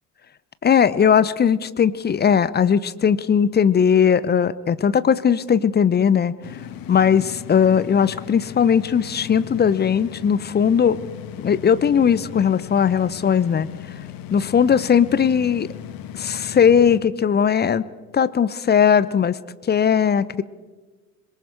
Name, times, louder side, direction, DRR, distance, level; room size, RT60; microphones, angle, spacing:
voice 1, 0.6-6.4 6.9-11.0 11.4-13.7 14.3-15.7 16.1-17.8 18.1-19.4 19.7-20.4, left 7 dB, 20° left, 17 dB, 0.8 m, -18 dB
sound 1, 6.4-17.0, left 9 dB, 45° left, 1.6 m, -37 dB
26.0 x 22.0 x 4.8 m, 1.3 s
figure-of-eight pair, 65°, 48 cm